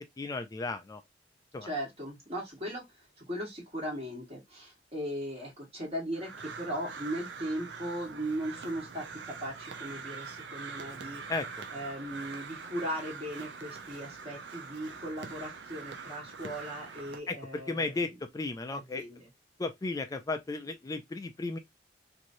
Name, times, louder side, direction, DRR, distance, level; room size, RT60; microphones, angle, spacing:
voice 1, 0.2-1.0 1.5-1.7 11.3-11.5 17.3-17.4 17.7-19.0 19.6-21.6, left 3 dB, 20° left, 0.3 m, -34 dB
voice 2, 1.6-11.2 11.7-18.2 18.7-19.3, equal, 35° right, 1.4 m, -38 dB
Crow, 6.1-17.2, right 5 dB, 65° right, 0.6 m, -44 dB
3.0 x 2.6 x 2.6 m
head